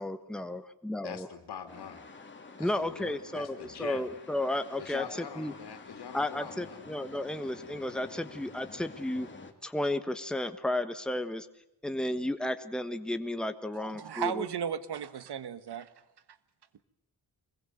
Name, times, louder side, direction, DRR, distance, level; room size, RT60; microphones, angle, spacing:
voice 1, 0.0-1.3 2.6-5.5 6.1-9.3 9.6-11.5 11.8-14.4, left 1 dB, ahead, 8 dB, 1.3 m, -33 dB
voice 2, 1.0-2.0 2.6-4.1 4.8-6.8, left 7 dB, 90° left, 7 dB, 2.9 m, -44 dB
sound 1, 1.7-9.5, left 4 dB, 30° left, 2.7 m, -49 dB
voice 3, 13.7-15.9, right 8 dB, 85° right, 14 dB, 1.6 m, -35 dB
25.5 x 21.5 x 8.0 m, 0.83 s
wide cardioid pair, 155°, 39 cm